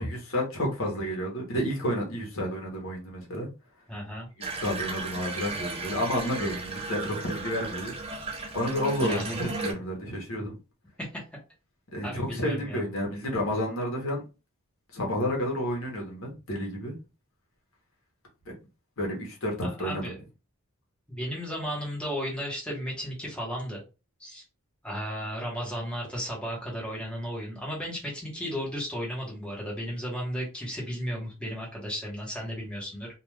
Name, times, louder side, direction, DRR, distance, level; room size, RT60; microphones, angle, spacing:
voice 1, 0.0-3.5 4.6-7.9 8.5-10.5 11.9-14.2 14.9-17.0 18.5-18.6 19.0-20.1, equal, 65° left, -1 dB, 1.0 m, -30 dB
voice 2, 3.9-4.3 9.0-9.4 10.4-10.5 11.0-11.2 12.0-12.8 19.6-20.2 21.1-23.8 24.2-24.4 24.8-33.1, equal, 5° left, -4 dB, 1.1 m, -34 dB
Water tap faucet / Bathtub (filling or washing), 4.4-9.7, right 3 dB, 25° right, 0.5 m, -35 dB
2.4 x 2.3 x 3.2 m, 0.30 s
head